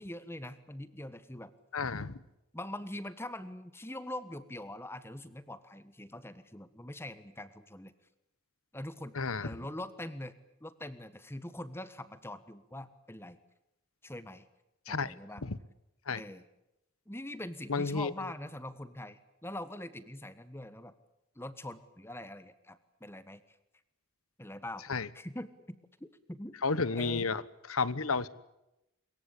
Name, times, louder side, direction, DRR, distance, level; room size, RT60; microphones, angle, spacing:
voice 1, 0.0-1.5 2.5-7.9 8.7-9.1 9.4-10.3 10.6-13.4 14.0-14.4 14.9-15.4 16.2-16.4 17.1-20.9 21.3-23.6 24.4-24.9 25.1-26.6 27.0-27.3, left 1 dB, 10° left, 13 dB, 1.4 m, -43 dB
voice 2, 1.7-2.2 9.1-9.5 14.9-15.1 15.4-15.6 16.1-16.2 17.7-18.1 24.9-25.1 26.6-27.4 27.7-28.3, left 4 dB, 85° left, 18 dB, 1.2 m, -31 dB
25.5 x 23.0 x 8.5 m, 0.88 s
head